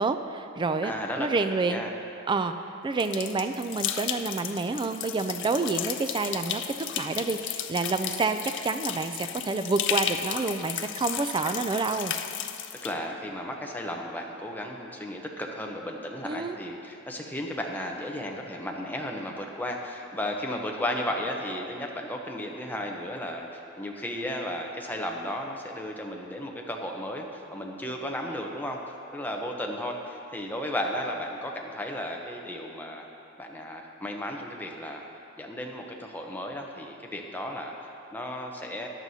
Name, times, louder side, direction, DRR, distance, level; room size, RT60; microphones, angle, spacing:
voice 1, 0.0-0.9 1.2-1.8 2.3-2.5 2.8-6.6 7.0-12.1 16.2-16.6, right 3 dB, 20° right, 8 dB, 0.3 m, -28 dB
voice 2, 0.8-1.3 1.7-1.9 12.8-28.8 29.1-33.0 33.4-35.0 35.3-38.9, left 1 dB, 10° left, 0 dB, 0.8 m, -34 dB
sound 1, 3.0-12.9, left 10 dB, 55° left, 0.5 m, -34 dB
14.0 x 10.5 x 2.8 m, 2.7 s
head